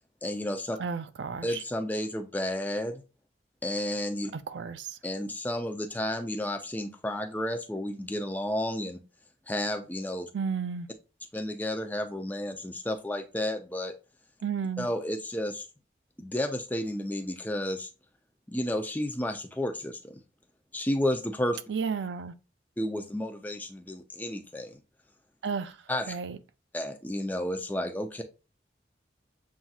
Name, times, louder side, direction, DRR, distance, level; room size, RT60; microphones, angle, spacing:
voice 1, 0.2-0.8 1.4-3.0 3.6-4.3 5.0-9.0 9.5-10.3 11.3-13.9 14.8-15.7 16.2-17.9 18.5-20.2 20.7-21.6 22.8-24.8 25.9-26.1 26.7-28.2, left 1 dB, 10° left, 0.5 m, -32 dB
voice 2, 0.8-1.6 4.3-5.0 10.3-10.9 14.4-14.9 21.7-22.3 25.4-25.8 26.1-26.4, right 6 dB, 85° right, 0.4 m, -33 dB
7.3 x 2.7 x 2.4 m
head